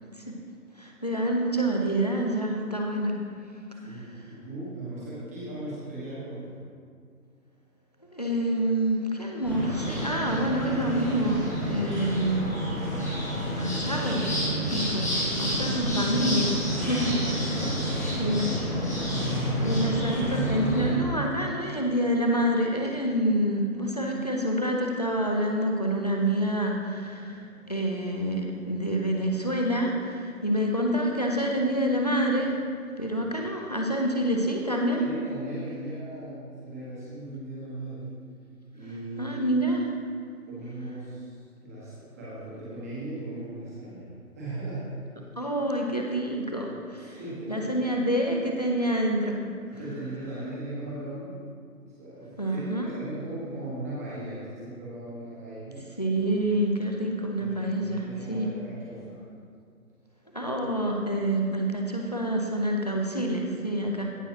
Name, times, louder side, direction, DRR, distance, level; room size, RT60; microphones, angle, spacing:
voice 1, 0.8-3.2 3.7-4.0 8.1-12.5 13.5-17.5 18.2-18.5 19.6-32.7 33.0-35.0 39.2-39.9 45.4-47.2 47.5-49.4 52.4-52.9 56.0-58.5 60.3-64.1, right 1 dB, 25° left, 0 dB, 0.6 m, -27 dB
voice 2, 3.7-6.6 17.0-19.1 35.0-38.1 38.7-39.4 40.5-44.1 44.3-44.9 47.0-47.7 49.7-51.4 51.8-55.9 57.3-59.2, right 1 dB, 10° right, -9 dB, 1.3 m, -38 dB
sound 1, 9.4-20.9, equal, 10° left, 0.9 m, -29 dB
16.0 x 6.0 x 2.9 m, 2.1 s
figure-of-eight pair, 150°, 46 cm